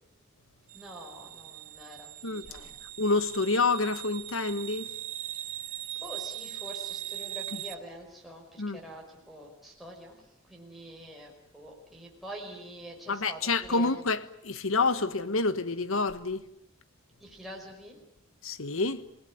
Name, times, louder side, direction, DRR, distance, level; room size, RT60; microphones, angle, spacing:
voice 1, 0.7-2.7 6.0-10.2 10.5-13.9 17.2-18.0, equal, ahead, 5.2 m, -46 dB
sound 1, 0.7-7.8, right 13 dB, 85° right, 1.7 m, -40 dB
voice 2, 2.2-2.6 3.0-4.9 8.6-8.8 13.1-16.4 18.4-19.1, left 3 dB, 80° left, 1.4 m, -28 dB
27.5 x 18.5 x 9.8 m
head